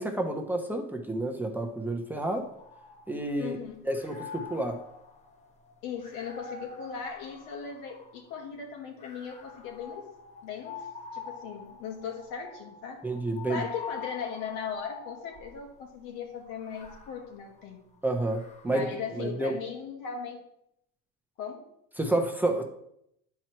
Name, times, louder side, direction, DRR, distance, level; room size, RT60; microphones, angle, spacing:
voice 1, 0.0-2.5 3.1-3.6 3.8-4.8 13.0-13.6 18.0-18.9 19.1-19.5 22.0-22.6, right 2 dB, 5° right, 2 dB, 1.0 m, -29 dB
sound 1, 2.3-3.5 3.9-8.3 9.0-15.7 16.4-19.0, left 5 dB, 20° left, 1.4 m, -45 dB
voice 2, 3.4-3.8 5.8-10.0 10.4-10.9 11.1-13.0 13.5-17.8 18.6-20.4 21.4-21.6, left 6 dB, 80° left, 1 dB, 2.5 m, -38 dB
10.0 x 4.6 x 4.5 m, 0.76 s
cardioid pair, 115°, 33 cm